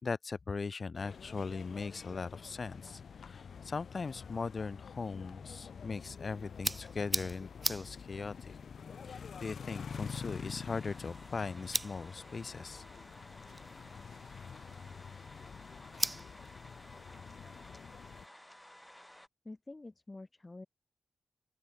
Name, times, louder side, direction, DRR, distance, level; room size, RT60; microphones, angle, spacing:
voice 1, 0.0-8.6 9.0-12.8, left 4 dB, 55° left, 1.7 m, -39 dB
sound 1, 0.9-18.3, left 6 dB, 75° left, 1.6 m, -47 dB
sound 2, 6.0-18.3, right 2 dB, 25° right, 1.1 m, -43 dB
sound 3, 9.9-19.3, left 1 dB, 10° left, 5.9 m, -55 dB
voice 2, 19.4-20.7, left 2 dB, 30° left, 2.2 m, -48 dB
open air
cardioid pair, 50°, 0 cm